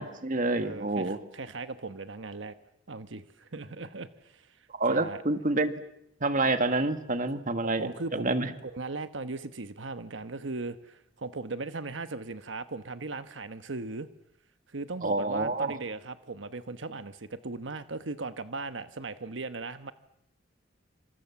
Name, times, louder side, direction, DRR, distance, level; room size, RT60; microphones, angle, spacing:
voice 1, 0.0-1.2 4.7-5.7 6.2-8.5 15.0-15.8, right 2 dB, 45° right, 9 dB, 1.8 m, -28 dB
voice 2, 0.6-2.5 2.9-4.5 4.9-5.2 7.8-14.1 14.7-19.9, right 3 dB, 80° right, 11 dB, 1.1 m, -38 dB
28.0 x 26.5 x 7.1 m, 0.76 s
head